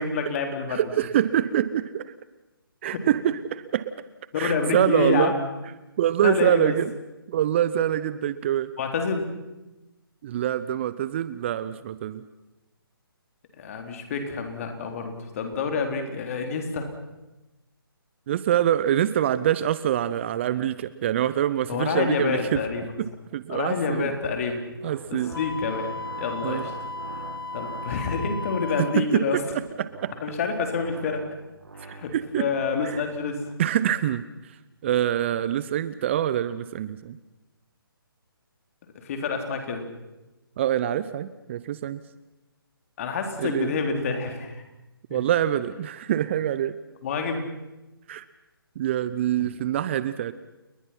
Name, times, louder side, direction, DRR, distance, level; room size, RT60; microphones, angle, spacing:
voice 1, 0.0-0.8 2.9-3.0 4.3-5.4 6.2-6.8 8.8-9.3 13.5-16.9 21.7-22.9 23.5-24.6 25.1-26.7 27.5-29.4 30.2-31.2 31.7-33.4 39.0-39.8 43.0-44.6 45.1-45.2 47.0-47.5 49.4-49.5, left 5 dB, 35° left, 5 dB, 3.8 m, -28 dB
voice 2, 0.7-2.1 2.8-3.9 4.4-5.3 6.0-6.9 7.3-8.7 10.2-12.2 18.3-22.6 23.0-24.1 24.8-25.3 26.4-26.7 28.8-30.1 31.9-32.5 32.9-33.0 33.6-34.6 34.8-37.2 40.6-42.0 43.4-43.7 45.1-46.8 48.1-48.2 48.8-50.3, right 11 dB, 30° right, 15 dB, 0.7 m, -25 dB
sound 1, 24.6-28.7 29.6-33.6, right 3 dB, 70° right, 2.5 m, -44 dB
Wind instrument woodwind instrument, 25.3-29.1, left 3 dB, 70° left, 0.8 m, -36 dB
29.5 x 21.5 x 5.9 m, 1.0 s
figure-of-eight pair, 145°, 12 cm